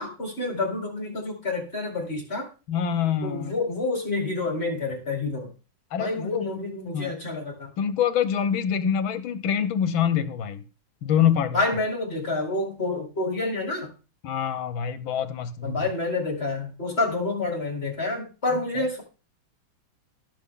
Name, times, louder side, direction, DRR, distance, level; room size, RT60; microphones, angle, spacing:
voice 1, 0.0-2.5 3.2-5.5 6.0-7.7 11.5-13.9 15.6-19.0, left 2 dB, 30° left, 4.8 m, -28 dB
voice 2, 2.7-3.6 5.9-6.5 6.9-7.2 7.8-10.6 11.0-11.6 14.2-15.8 18.8-18.9, left 8 dB, 85° left, 1.9 m, -25 dB
17.5 x 7.1 x 3.9 m
omnidirectional pair, 2.1 m